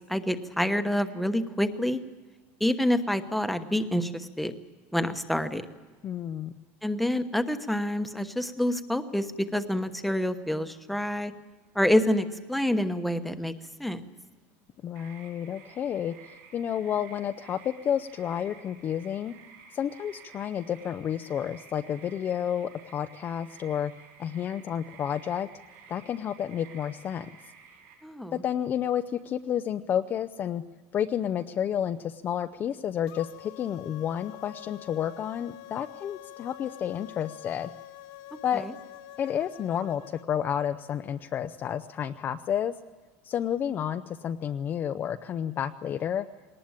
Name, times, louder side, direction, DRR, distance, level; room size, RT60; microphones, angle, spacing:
voice 1, 0.1-2.0 2.6-4.5 4.9-5.6 6.8-11.3 11.7-13.5 13.8-14.0 28.0-28.4 38.3-38.7, left 1 dB, ahead, 8 dB, 1.1 m, -27 dB
voice 2, 6.0-6.5 14.8-19.3 19.7-23.9 24.2-25.5 25.9-27.3 28.3-30.6 30.9-37.7 38.4-38.7 39.2-42.7 43.2-46.3, left 9 dB, 30° left, 8 dB, 0.6 m, -30 dB
sound 1, 14.9-27.9, right 6 dB, 75° right, 7.2 m, -52 dB
sound 2, 33.1-40.3, left 15 dB, 60° left, 1.4 m, -46 dB
21.0 x 19.0 x 8.9 m, 1.3 s
supercardioid pair, 155°, 7 cm